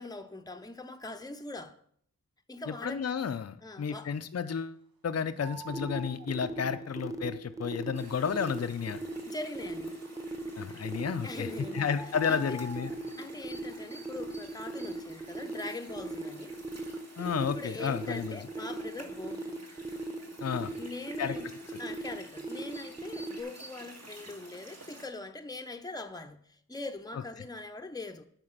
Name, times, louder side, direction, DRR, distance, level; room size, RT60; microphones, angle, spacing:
voice 1, 0.0-1.8 2.5-3.1 3.6-4.1 6.6-6.8 9.2-10.0 11.2-11.9 12.3-12.6 13.2-16.6 17.4-19.6 20.8-21.5 21.8-28.3, left 2 dB, 10° left, 0.7 m, -42 dB
voice 2, 2.7-4.8 5.0-9.0 10.6-12.9 17.2-18.4 20.4-20.7 21.2-21.4, left 6 dB, 45° left, 0.5 m, -32 dB
sound 1, 5.4-6.3 10.9-11.0 11.7-13.0, equal, 85° right, 0.8 m, -45 dB
sound 2, 5.7-23.4, right 3 dB, 10° right, 1.0 m, -38 dB
sound 3, 7.9-25.1, right 1 dB, 45° right, 1.8 m, -51 dB
9.7 x 4.4 x 6.5 m
wide cardioid pair, 55°, 35 cm